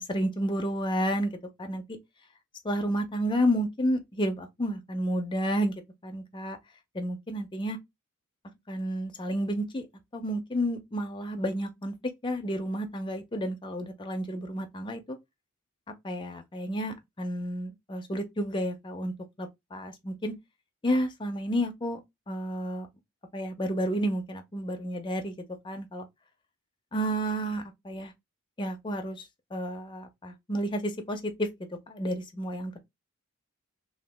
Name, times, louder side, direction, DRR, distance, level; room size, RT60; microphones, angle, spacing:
voice 1, 0.0-1.3 1.6-2.0 2.6-5.7 6.0-6.6 6.9-7.8 8.7-9.9 10.1-11.9 12.2-15.2 16.0-19.1 19.4-20.3 20.8-22.0 22.3-22.9 23.3-25.3 25.6-26.1 26.9-28.1 28.6-32.8, equal, 20° left, 0.5 m, -31 dB
2.8 x 2.3 x 3.3 m
head